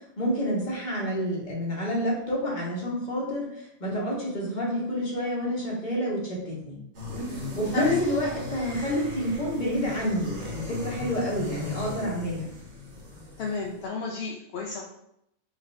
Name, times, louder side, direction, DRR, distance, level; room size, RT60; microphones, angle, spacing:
voice 1, 0.2-6.8 7.3-12.5, equal, 35° left, -5 dB, 1.4 m, -29 dB
sound 1, 6.9-13.8, left 2 dB, 55° right, 1.3 m, -37 dB
voice 2, 13.4-14.8, left 4 dB, 60° left, -2 dB, 0.7 m, -29 dB
4.1 x 2.6 x 4.2 m, 0.76 s
omnidirectional pair, 1.5 m